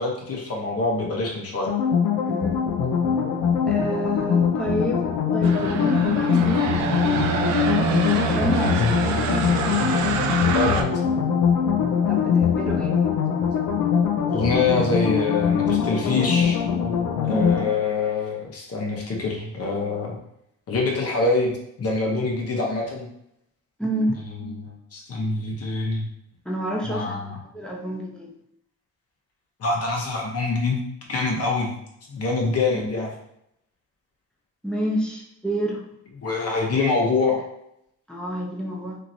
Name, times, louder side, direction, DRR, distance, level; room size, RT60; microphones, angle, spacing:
voice 1, 0.0-1.7 10.5-10.9 14.3-16.6 17.2-20.2 20.7-21.5 21.8-23.1 24.5-26.1 26.8-27.4 29.6-30.8 31.1-31.8 32.1-33.1 36.2-37.4, left 3 dB, 50° left, 0 dB, 0.9 m, -25 dB
sound 1, 1.7-17.6, left 7 dB, 90° left, 0.5 m, -22 dB
voice 2, 2.2-2.6 3.7-7.9 8.3-9.5 12.1-13.0 17.3-17.5 23.8-24.2 26.4-28.3 32.7-32.9 34.6-35.8 38.1-39.0, equal, 5° left, -2 dB, 0.7 m, -29 dB
sound 2, 5.4-10.8, right 7 dB, 70° right, 0.5 m, -26 dB
2.9 x 2.8 x 2.7 m, 0.77 s
cardioid pair, 90°, 30 cm